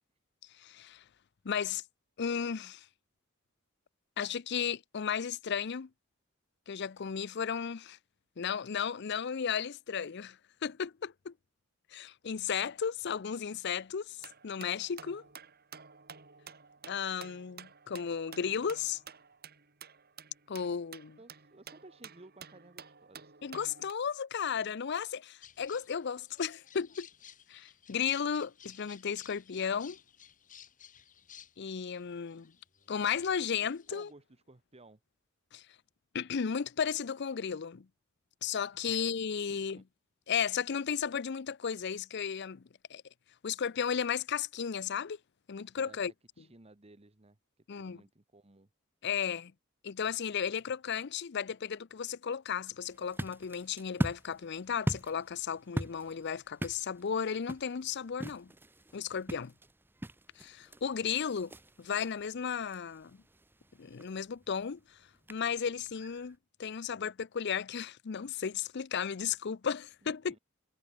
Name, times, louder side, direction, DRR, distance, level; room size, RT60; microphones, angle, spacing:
voice 1, 0.6-1.0 1.4-1.8 2.2-2.9 4.2-5.9 6.7-8.0 8.4-11.3 11.9-15.2 16.9-19.0 20.5-21.2 23.4-27.1 27.5-30.0 31.6-32.5 32.9-34.1 35.5-35.6 36.1-37.9 38.4-39.8 40.3-43.0 43.4-45.2 45.5-46.1 47.7-48.0 49.0-49.5 49.8-58.5 58.9-59.5 60.4-61.5 61.8-63.1 63.8-65.0 65.3-70.3, left 7 dB, 55° left, 0.5 m, -34 dB
sound 1, 14.2-23.9, right 7 dB, 50° right, 3.8 m, -52 dB
voice 2, 21.2-23.4 33.9-35.0 38.9-39.0 39.5-39.8 45.8-46.0 46.4-48.7 70.0-70.4, right 2 dB, 30° right, 1.2 m, -57 dB
sound 2, 25.4-34.1, left 9 dB, 40° left, 3.3 m, -56 dB
sound 3, 52.8-66.4, right 1 dB, 10° right, 1.1 m, -42 dB
head